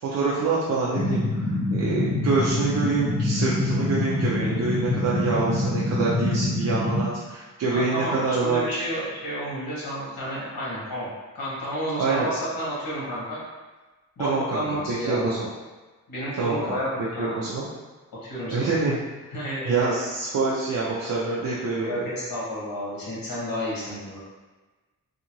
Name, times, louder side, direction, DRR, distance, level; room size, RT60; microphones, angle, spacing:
voice 1, 0.0-8.6 12.0-12.3 14.2-15.5 16.4-16.6 17.2-17.7 18.5-19.0 19.6-21.9, right 3 dB, 50° right, -6 dB, 0.5 m, -26 dB
sound 1, 0.9-7.0, left 1 dB, 35° left, 0.6 m, -25 dB
voice 2, 7.7-11.1 11.3-13.4 14.2-15.3 16.1-17.4 18.2-18.7 19.3-19.7 21.8-24.2, equal, 80° left, -8 dB, 1.1 m, -31 dB
2.7 x 2.4 x 2.9 m, 1.3 s
wide cardioid pair, 125°, 34 cm